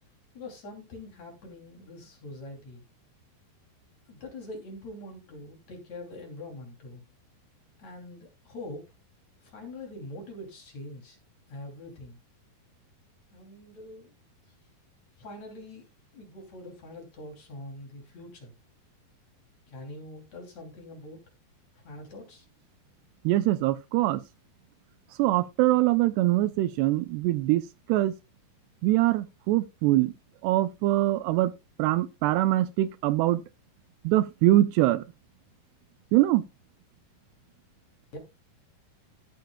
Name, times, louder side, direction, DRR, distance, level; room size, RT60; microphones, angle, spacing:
voice 1, 0.3-2.9 4.1-7.0 7.8-8.8 9.4-11.2 11.5-12.2 13.3-14.1 15.2-15.9 16.1-18.5 19.7-21.2 21.7-22.5 38.1-38.2, left 1 dB, 45° left, 4.0 m, -43 dB
voice 2, 23.2-24.2 25.2-28.1 28.8-30.1 30.4-31.5 31.8-33.4 34.0-35.0 36.1-36.4, right 16 dB, 80° right, 2.7 m, -23 dB
15.0 x 7.9 x 2.3 m
omnidirectional pair, 4.8 m